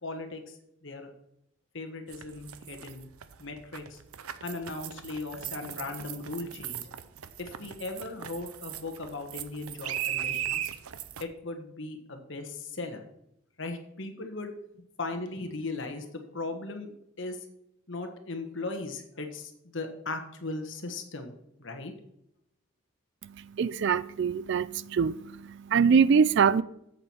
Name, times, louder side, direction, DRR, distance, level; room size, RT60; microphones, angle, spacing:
voice 1, 0.0-1.1 1.7-3.1 3.4-4.0 4.4-6.9 7.4-10.6 11.2-13.0 13.6-16.1 16.3-17.4 17.9-21.3 21.6-21.9, left 2 dB, 55° left, 1.4 m, -38 dB
sound 1, 2.1-11.2, right 10 dB, 85° right, 0.6 m, -38 dB
voice 2, 23.2-26.6, right 6 dB, 55° right, 0.3 m, -24 dB
7.9 x 7.5 x 5.7 m
head